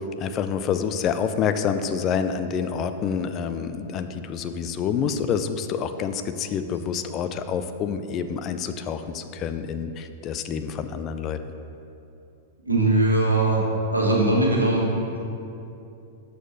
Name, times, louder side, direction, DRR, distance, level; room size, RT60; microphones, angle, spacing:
voice 1, 0.2-11.4, left 7 dB, 35° left, 9 dB, 0.3 m, -27 dB
voice 2, 12.7-13.6 13.9-15.2, right 2 dB, 90° right, -3 dB, 1.3 m, -20 dB
6.3 x 4.5 x 5.2 m, 2.7 s
figure-of-eight pair, 100°, 0 cm